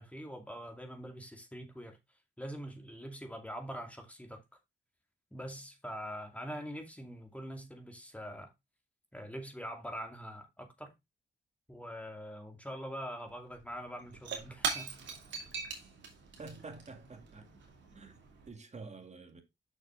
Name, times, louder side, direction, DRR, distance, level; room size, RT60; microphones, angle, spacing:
voice 1, 0.0-2.0 2.4-4.4 5.3-8.5 9.1-10.9 11.7-15.0, equal, 5° left, 2.4 m, -44 dB
Shatter / Crushing, 13.3-13.4 13.6-18.5, right 5 dB, 85° right, 2.7 m, -41 dB
voice 2, 16.4-17.5 17.9-18.2 18.5-19.4, right 3 dB, 40° right, 2.0 m, -48 dB
6.5 x 6.3 x 3.7 m
cardioid pair, 65°, 19 cm